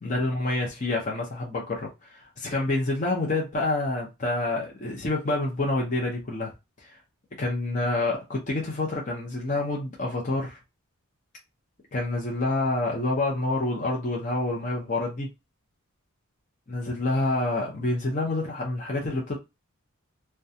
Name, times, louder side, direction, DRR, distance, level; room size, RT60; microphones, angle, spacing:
voice 1, 0.0-1.9 2.4-6.5 7.4-10.6 11.9-15.3 16.7-19.4, left 2 dB, 35° left, 0.6 m, -27 dB
2.3 x 2.2 x 2.7 m
head